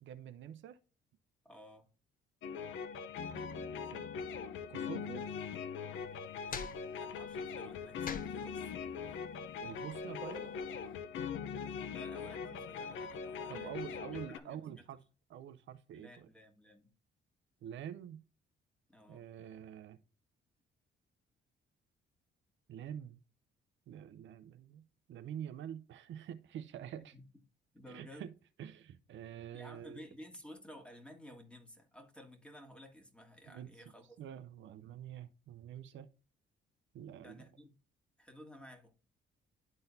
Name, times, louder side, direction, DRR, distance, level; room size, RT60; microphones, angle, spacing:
voice 1, 0.0-0.8 3.3-4.0 4.7-5.3 9.6-10.5 13.5-15.0 15.3-16.3 17.6-18.2 19.1-20.0 22.7-23.2 23.9-27.1 27.9-28.3 28.6-30.0 33.5-33.7 34.2-36.1 36.9-37.5, right 10 dB, 70° right, 0.6 m, -47 dB
voice 2, 1.4-1.9 6.9-8.7 9.0-9.3 11.9-14.8 15.9-16.9 18.9-19.2 27.1-27.2 27.7-28.3 29.5-34.2 37.2-37.7 38.2-38.9, equal, 5° left, 1.8 m, -54 dB
sound 1, 2.4-14.4, left 6 dB, 75° left, 0.7 m, -41 dB
sound 2, 5.9-10.9, left 5 dB, 45° left, 0.8 m, -48 dB
12.0 x 3.9 x 2.7 m
cardioid pair, 90°, 20 cm